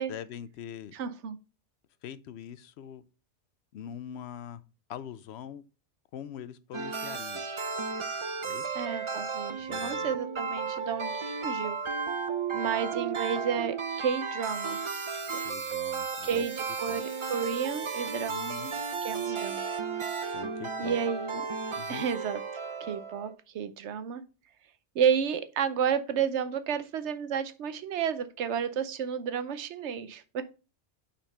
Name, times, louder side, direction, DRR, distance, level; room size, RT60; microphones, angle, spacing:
voice 1, 0.1-0.9 2.0-3.0 3.7-4.6 4.9-5.6 6.1-7.4 8.5-8.7 9.6-10.1 15.4-16.5 16.9-17.0 18.3-18.7 20.3-21.0 21.8-22.0, left 9 dB, 75° left, 0.8 m, -43 dB
voice 2, 0.9-1.4 8.7-11.8 12.5-14.8 16.2-18.7 19.0-19.7 20.8-21.5 21.9-22.4 22.8-24.2 24.9-30.4, right 7 dB, 80° right, 1.0 m, -31 dB
sound 1, 6.7-23.3, right 5 dB, 35° right, 0.5 m, -34 dB
5.9 x 4.3 x 5.5 m
omnidirectional pair, 1.1 m